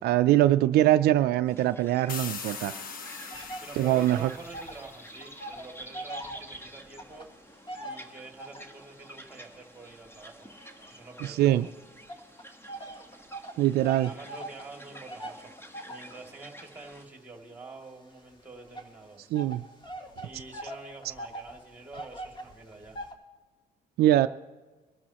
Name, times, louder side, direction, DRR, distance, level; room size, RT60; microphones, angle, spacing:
voice 1, 0.0-2.7 3.7-4.3 11.2-11.7 13.6-14.1 19.3-19.6 24.0-24.3, right 14 dB, 70° right, 11 dB, 0.4 m, -23 dB
sound 1, 1.5-17.1, right 1 dB, 15° left, 1.4 m, -50 dB
sound 2, 2.1-5.7, left 5 dB, 55° left, 1.3 m, -41 dB
sound 3, 3.3-4.9 5.1-8.8 9.4-11.5 12.1-23.1, right 1 dB, 30° left, 1.9 m, -43 dB
voice 2, 3.6-7.3 7.8-10.5 10.9-11.6 14.0-15.5 15.8-19.2 20.2-23.0, right 3 dB, 10° right, 2 dB, 2.5 m, -47 dB
22.5 x 12.5 x 3.0 m, 1.3 s
cardioid pair, 110°, 17 cm